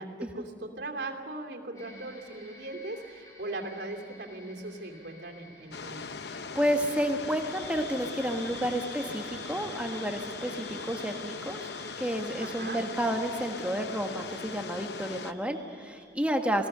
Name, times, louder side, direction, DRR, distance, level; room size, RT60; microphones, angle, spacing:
voice 1, 0.0-6.1 12.4-12.8 16.5-16.7, right 2 dB, 75° right, 3 dB, 2.8 m, -39 dB
sound 1, 1.7-16.0, equal, 20° left, 5.8 m, -50 dB
sound 2, 5.7-15.3, left 5 dB, 70° left, 0.8 m, -40 dB
voice 2, 6.3-11.7 12.0-16.7, equal, 5° right, 4 dB, 1.5 m, -31 dB
28.0 x 19.0 x 6.8 m, 2.1 s
head